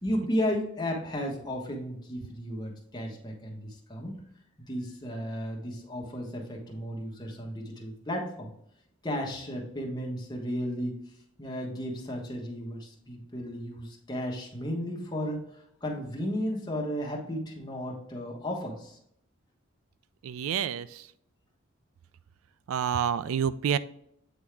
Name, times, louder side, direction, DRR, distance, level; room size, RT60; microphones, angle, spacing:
voice 1, 0.0-4.2 4.6-8.5 9.0-11.0 11.4-15.4 15.8-19.0, equal, 20° left, -1 dB, 1.2 m, -34 dB
voice 2, 20.2-21.1 22.7-23.8, right 8 dB, 90° right, 16 dB, 0.3 m, -28 dB
8.7 x 3.6 x 3.3 m, 0.72 s
head